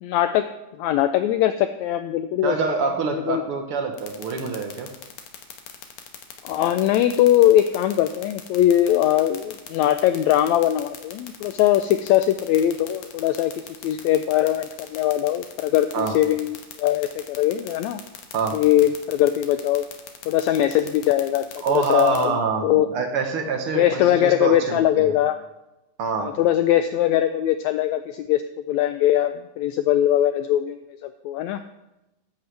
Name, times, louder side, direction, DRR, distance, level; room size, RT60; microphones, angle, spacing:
voice 1, 0.0-0.4 0.8-2.5 3.1-3.4 6.4-13.5 13.8-18.0 18.5-19.8 20.3-21.4 21.7-22.4 22.6-22.9 23.7-25.4 26.2-28.4 28.7-30.8 31.0-31.6, left 12 dB, 85° left, 10 dB, 1.6 m, -21 dB
voice 2, 2.4-4.9 15.9-16.1 18.3-18.6 21.6-25.1 26.0-26.3, right 5 dB, 65° right, 4 dB, 1.5 m, -26 dB
sound 1, 4.0-22.2, left 10 dB, 70° left, 2.5 m, -39 dB
13.5 x 11.0 x 3.3 m, 0.95 s
omnidirectional pair, 3.7 m